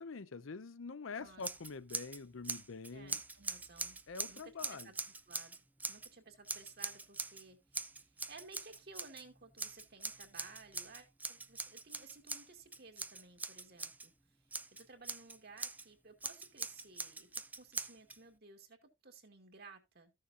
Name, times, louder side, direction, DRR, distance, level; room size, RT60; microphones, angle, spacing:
voice 1, 0.0-3.2 4.1-4.9, left 4 dB, 90° left, 0.7 m, -45 dB
Scissors, 1.4-2.2 2.4-6.1 6.5-7.4 7.7-9.2 9.6-14.1 14.5-15.8 16.2-18.2, right 3 dB, 10° right, 0.4 m, -42 dB
voice 2, 2.9-4.0 4.3-14.4 14.7-20.1, right 4 dB, 55° right, 2.0 m, -57 dB
14.0 x 6.6 x 2.6 m
head